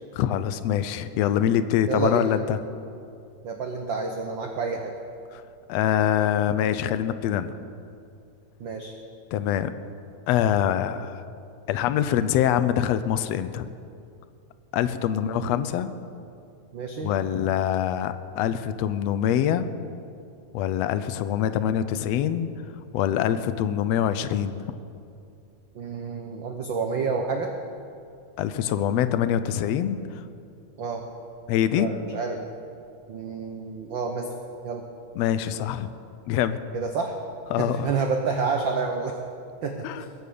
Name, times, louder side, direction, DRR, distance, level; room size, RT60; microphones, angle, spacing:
voice 1, 0.2-2.6 5.3-5.4 5.7-7.6 9.3-9.7 10.3-11.2 11.7-13.7 14.7-15.9 17.0-19.7 20.5-22.5 22.9-24.7 28.4-30.0 31.5-31.9 35.2-35.9 36.3-36.6 37.5-37.9 39.8-40.0, left 10 dB, 75° left, 12 dB, 1.7 m, -24 dB
voice 2, 1.9-2.3 3.4-4.9 8.6-8.9 15.1-15.7 16.7-17.1 25.7-27.5 30.8-31.0 31.7-32.4 33.1-34.3 34.6-34.8 36.7-37.2 37.6-39.2 39.6-39.9, right 5 dB, 70° right, 4 dB, 1.1 m, -29 dB
22.0 x 9.2 x 6.8 m, 2.5 s
omnidirectional pair, 3.3 m